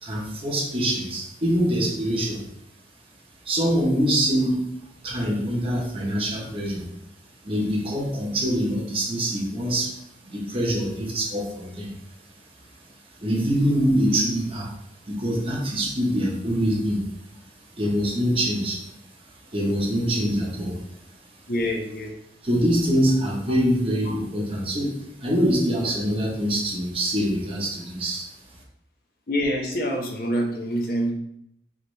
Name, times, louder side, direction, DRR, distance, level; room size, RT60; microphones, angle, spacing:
voice 1, 0.0-2.4 3.4-4.7 5.0-6.9 7.4-11.9 13.2-14.8 15.1-17.0 17.8-18.8 19.5-20.8 22.4-28.2, equal, 30° right, -2 dB, 1.0 m, -24 dB
voice 2, 21.5-22.1 29.3-31.1, equal, 55° left, 1 dB, 0.8 m, -26 dB
4.7 x 3.3 x 3.2 m, 0.75 s
head